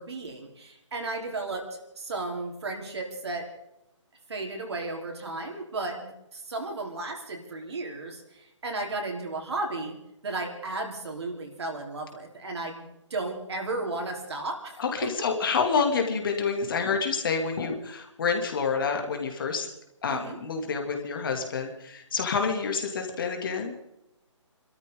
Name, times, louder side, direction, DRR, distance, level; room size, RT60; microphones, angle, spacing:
voice 1, 0.0-1.7 2.0-3.5 4.3-9.9 10.2-14.8 15.5-15.6 20.1-20.4, right 2 dB, 55° right, 2 dB, 4.0 m, -34 dB
voice 2, 14.8-19.7 20.0-23.7, left 5 dB, 45° left, 4 dB, 2.7 m, -28 dB
26.5 x 13.0 x 3.9 m, 0.87 s
figure-of-eight pair, 145°, 16 cm